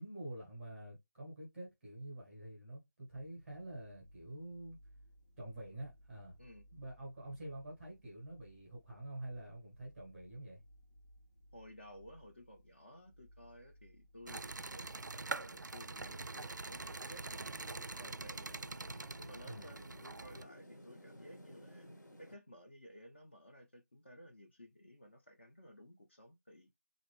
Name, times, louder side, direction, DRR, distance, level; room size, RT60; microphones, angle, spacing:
voice 1, 0.0-4.8 5.4-6.4 6.7-10.6 19.4-19.7, right 1 dB, ahead, 0.8 m, -47 dB
sound 1, 3.1-19.9, equal, 90° left, 1.2 m, -64 dB
voice 2, 11.5-18.6 19.2-21.9 22.2-26.7, equal, 35° left, 0.6 m, -56 dB
spinning wheel (kolovrat), 14.3-20.4, right 3 dB, 70° right, 0.4 m, -44 dB
sound 2, 17.1-22.4, equal, 70° left, 1.1 m, -56 dB
3.8 x 2.6 x 3.2 m
figure-of-eight pair, 165°, 10 cm